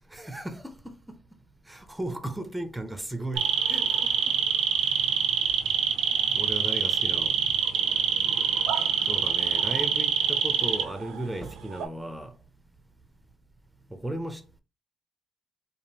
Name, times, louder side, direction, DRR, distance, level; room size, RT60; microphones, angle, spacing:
voice 1, 0.1-1.2 1.7-4.4 6.3-7.4 9.1-12.3 13.9-14.6, right 1 dB, 10° right, 0.6 m, -36 dB
sound 1, 3.4-11.2 11.5-11.9, right 7 dB, 80° right, 0.5 m, -25 dB
3.3 x 2.4 x 2.7 m
cardioid pair, 90°, 0 cm